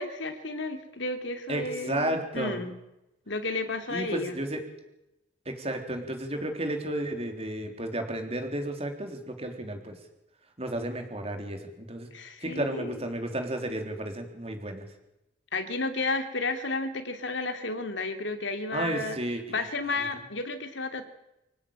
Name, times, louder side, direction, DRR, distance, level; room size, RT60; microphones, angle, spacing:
voice 1, 0.0-2.7 3.3-4.4 12.1-13.1 15.5-19.2 19.5-21.0, left 3 dB, 65° left, 7 dB, 2.8 m, -32 dB
voice 2, 1.5-2.6 3.9-4.6 5.5-10.0 10.6-12.1 12.4-14.9 18.7-19.4, right 1 dB, 30° right, 5 dB, 3.7 m, -32 dB
26.0 x 17.0 x 9.0 m, 0.90 s
head